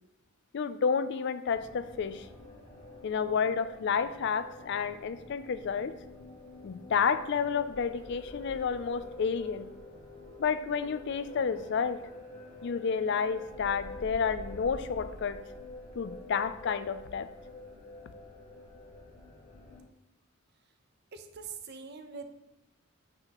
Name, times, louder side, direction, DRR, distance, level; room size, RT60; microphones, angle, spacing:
voice 1, 0.5-2.3 3.0-5.9 6.6-9.7 10.4-12.1 12.6-15.4 15.9-17.3, left 6 dB, 55° left, 13 dB, 0.4 m, -30 dB
sound 1, 1.5-19.8, left 2 dB, 30° left, 1.6 m, -47 dB
voice 2, 21.1-22.3, right 5 dB, 50° right, 7 dB, 0.7 m, -43 dB
8.9 x 5.7 x 3.0 m, 0.93 s
head